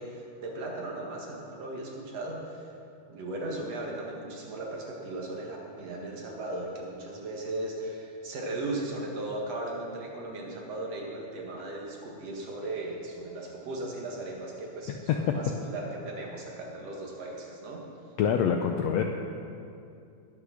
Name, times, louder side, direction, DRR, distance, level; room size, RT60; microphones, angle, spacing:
voice 1, 0.0-2.7 3.1-17.8, right 2 dB, 55° right, -1 dB, 2.7 m, -37 dB
voice 2, 18.2-19.0, left 7 dB, 85° left, 4 dB, 1.5 m, -25 dB
19.5 x 6.7 x 6.4 m, 2.6 s
omnidirectional pair, 3.8 m